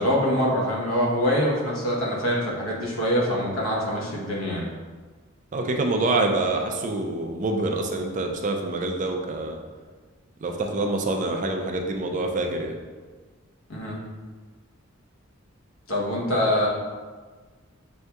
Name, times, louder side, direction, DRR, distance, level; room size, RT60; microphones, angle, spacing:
voice 1, 0.0-4.7 13.7-14.0 15.9-16.7, equal, 75° left, -3 dB, 1.0 m, -24 dB
voice 2, 5.5-9.6 10.4-12.8, right 2 dB, 35° right, 3 dB, 0.4 m, -26 dB
6.2 x 2.7 x 2.3 m, 1.4 s
head